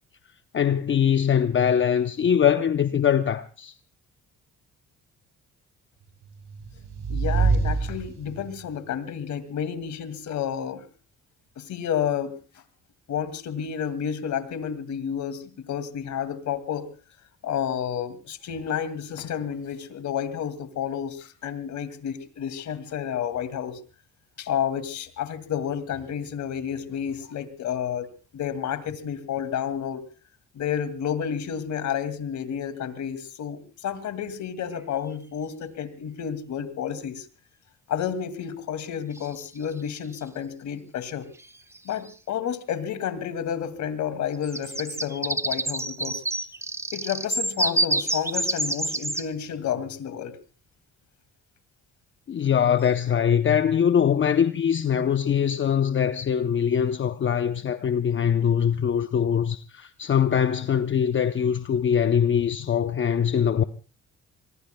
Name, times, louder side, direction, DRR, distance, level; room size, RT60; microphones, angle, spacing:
voice 1, 0.5-3.7 52.3-63.6, left 8 dB, 40° left, 0.7 m, -22 dB
sound 1, 6.3-8.7, right 4 dB, 70° right, 3.0 m, -26 dB
voice 2, 7.1-10.8 11.6-12.3 13.1-16.9 17.4-23.8 24.4-30.0 30.5-37.3 37.9-41.3 41.8-46.2 46.9-50.4, left 8 dB, 70° left, 2.4 m, -30 dB
sound 2, 34.8-34.9 39.1-39.7 41.4-41.5 41.7-42.1 44.3-49.3, right 2 dB, 10° right, 0.7 m, -28 dB
25.5 x 22.0 x 2.3 m
cardioid pair, 90°, 30 cm